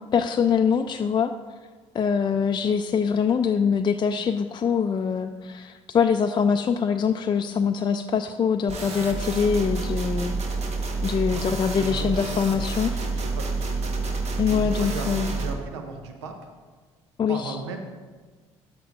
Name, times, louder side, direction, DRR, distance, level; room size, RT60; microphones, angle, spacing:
voice 1, 0.1-1.3 1.9-10.3 11.0-12.9 14.4-15.3 17.2-17.5, left 6 dB, 30° left, 6 dB, 0.4 m, -23 dB
sound 1, 8.7-15.5, right 3 dB, 50° right, 1.2 m, -29 dB
voice 2, 11.3-12.4 12.9-16.5 17.3-17.8, right 4 dB, 85° right, 4 dB, 0.7 m, -37 dB
11.0 x 7.9 x 2.5 m, 1.4 s
hypercardioid pair, 55°, 14 cm